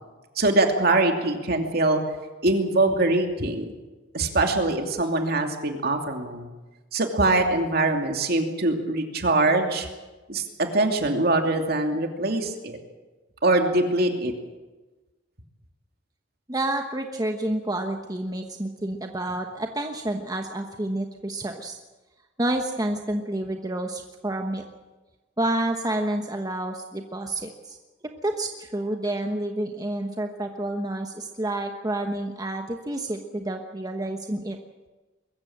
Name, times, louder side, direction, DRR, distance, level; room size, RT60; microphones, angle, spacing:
voice 1, 0.4-2.0 2.4-3.6 4.1-6.5 6.9-9.9 10.3-10.4 10.7-12.8 13.4-14.3, right 2 dB, 55° right, 4 dB, 2.7 m, -23 dB
voice 2, 16.5-21.8 22.4-24.6 25.4-27.8 28.2-34.6, right 1 dB, 20° right, 4 dB, 1.2 m, -29 dB
22.5 x 14.5 x 8.8 m, 1.2 s
head